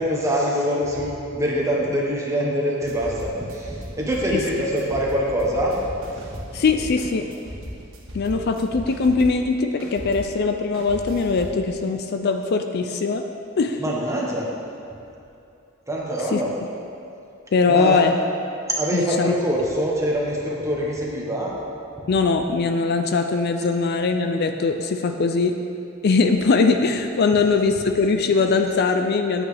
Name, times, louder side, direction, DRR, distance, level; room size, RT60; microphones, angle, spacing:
voice 1, 0.0-5.7 6.3-6.4 13.8-14.5 15.9-16.5 17.7-18.0 18.7-21.5, equal, 15° right, -4 dB, 1.3 m, -24 dB
sound 1, 2.9-9.5 9.8-11.6, equal, 90° right, 1.3 m, -37 dB
voice 2, 6.5-7.3 8.1-13.3 13.6-13.8 16.3-16.4 17.5-18.1 18.9-19.3 22.1-25.6 26.0-29.4, left 4 dB, 50° left, 6 dB, 0.4 m, -21 dB
9.3 x 8.3 x 3.4 m, 2.6 s
head